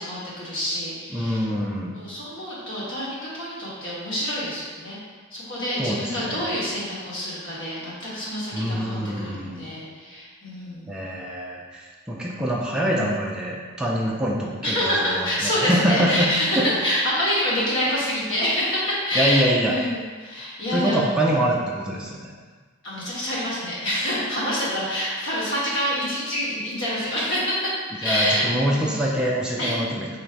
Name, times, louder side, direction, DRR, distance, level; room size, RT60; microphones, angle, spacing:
voice 1, 0.0-1.4 1.9-5.0 5.3-11.0 14.6-21.1 22.8-28.9 29.6-29.8, equal, 55° left, -8 dB, 1.3 m, -27 dB
voice 2, 1.1-2.0 5.8-6.6 8.5-9.7 10.9-17.1 19.1-19.9 20.7-22.3 28.0-30.2, right 1 dB, 5° right, -4 dB, 0.3 m, -25 dB
3.1 x 2.6 x 4.4 m, 1.5 s
head